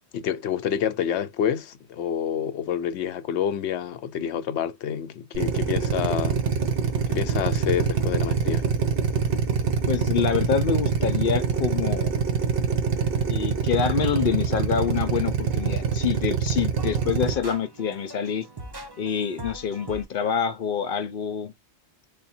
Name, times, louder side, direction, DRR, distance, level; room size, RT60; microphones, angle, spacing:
voice 1, 0.1-6.4 7.1-8.7, left 9 dB, 85° left, 0.9 m, -28 dB
Drill, 5.3-17.3, right 6 dB, 60° right, 1.0 m, -24 dB
voice 2, 9.9-12.2 13.3-18.5 19.0-21.5, left 7 dB, 60° left, 0.7 m, -26 dB
sound 1, 14.1-16.4 16.8-20.0, right 2 dB, 25° right, 0.7 m, -43 dB
3.6 x 2.1 x 4.2 m
omnidirectional pair, 1.1 m